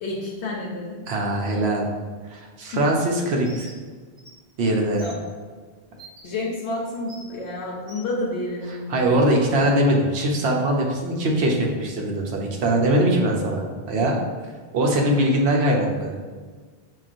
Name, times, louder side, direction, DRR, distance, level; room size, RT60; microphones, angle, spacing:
voice 1, 0.0-1.0 2.7-2.9 5.0-5.2 6.2-9.1, left 2 dB, 85° left, -3 dB, 0.9 m, -30 dB
voice 2, 1.1-1.9 2.3-3.7 4.6-5.0 8.9-14.2 14.7-16.2, right 1 dB, 75° right, 0 dB, 0.9 m, -21 dB
Bird, 3.4-3.8 4.2-4.3 5.0-5.2 6.0-6.2 7.1-7.3 7.9-8.1, right 1 dB, 30° right, 0.8 m, -44 dB
5.6 x 2.3 x 2.5 m, 1.5 s
omnidirectional pair, 1.1 m